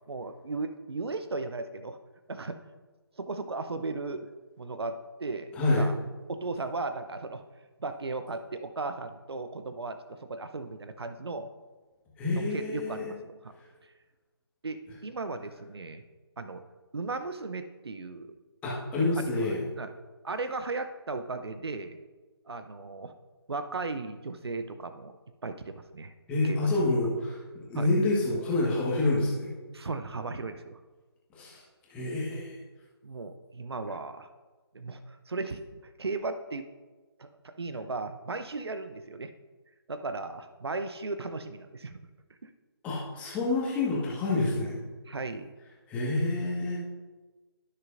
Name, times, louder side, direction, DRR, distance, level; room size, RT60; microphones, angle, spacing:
voice 1, 0.1-2.0 2.3-2.6 3.2-4.3 4.6-6.0 6.4-7.4 7.8-11.5 12.3-13.5 14.6-16.0 16.4-16.6 16.9-18.3 19.2-19.9 20.2-22.0 22.5-23.1 23.5-25.1 25.4-26.1 26.4-26.6 27.7-27.9 29.7-30.8 33.0-34.3 34.7-36.7 37.2-39.3 39.9-42.0 42.4-42.5 45.1-45.5, right 3 dB, 70° right, 10 dB, 0.7 m, -36 dB
voice 2, 5.5-5.9 12.2-13.1 18.6-19.6 26.3-29.5 31.3-31.6 31.9-32.6 42.8-44.7 45.9-46.8, left 2 dB, 10° left, -6 dB, 1.6 m, -28 dB
15.5 x 6.6 x 2.6 m, 1.3 s
figure-of-eight pair, 155°, 14 cm